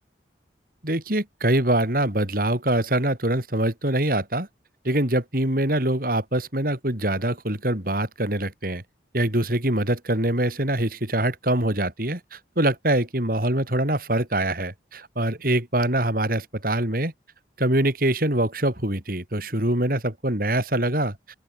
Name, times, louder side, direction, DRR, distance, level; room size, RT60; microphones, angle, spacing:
voice 1, 0.8-4.5 4.8-8.8 9.1-17.1 17.6-21.2, right 1 dB, 50° right, 3.8 m, -24 dB
open air
head